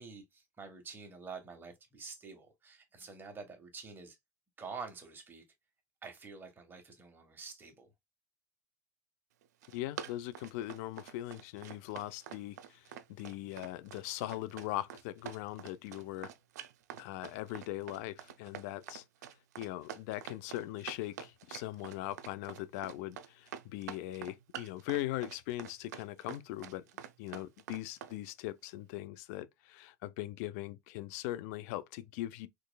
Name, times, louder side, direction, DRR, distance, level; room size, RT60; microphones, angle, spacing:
voice 1, 0.0-4.2 4.6-5.4 6.0-7.9, right 4 dB, 20° right, 1.4 m, -47 dB
Run, 9.4-28.1, right 9 dB, 85° right, 0.5 m, -46 dB
voice 2, 9.7-16.3 17.0-19.0 19.6-26.9 27.2-32.5, left 15 dB, 65° left, 0.5 m, -40 dB
4.0 x 3.1 x 2.3 m
supercardioid pair, 110°, 9 cm